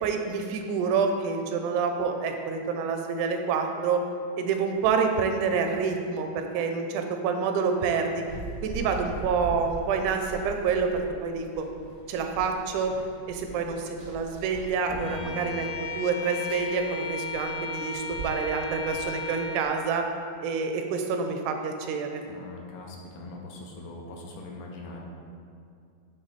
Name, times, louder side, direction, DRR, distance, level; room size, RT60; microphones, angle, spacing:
voice 1, 0.0-4.0 4.4-8.2 8.6-11.7 12.1-13.0 13.3-20.1 20.4-22.2, right 5 dB, 80° right, 4 dB, 2.0 m, -27 dB
Run, 8.3-19.6, right 3 dB, 65° right, 0.7 m, -42 dB
voice 2, 14.9-15.6 22.2-25.0, left 3 dB, 80° left, -1 dB, 2.2 m, -41 dB
Bowed string instrument, 15.0-19.9, left 3 dB, 60° left, 1.5 m, -35 dB
7.9 x 3.2 x 4.0 m, 2.4 s
omnidirectional pair, 3.5 m